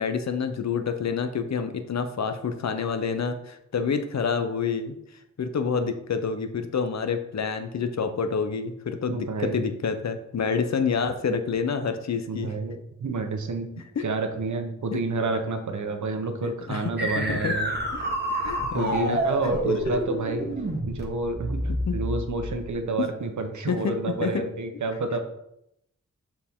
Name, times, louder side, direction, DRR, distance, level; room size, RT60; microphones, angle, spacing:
voice 1, 0.0-5.0 5.4-12.5 14.0-14.1 16.7-16.8 17.1-17.5 17.9-18.0 18.3-20.0 21.9-22.0 23.7-23.9 24.2-24.4, left 5 dB, 65° left, 8 dB, 0.7 m, -28 dB
voice 2, 9.1-9.5 12.3-17.7 18.7-20.5 20.8-21.6 21.9-25.2, right 3 dB, 70° right, 6 dB, 0.9 m, -29 dB
sound 1, 17.0-22.7, right 1 dB, 35° right, 1.4 m, -28 dB
7.0 x 4.6 x 3.6 m, 0.79 s
wide cardioid pair, 80°, 30 cm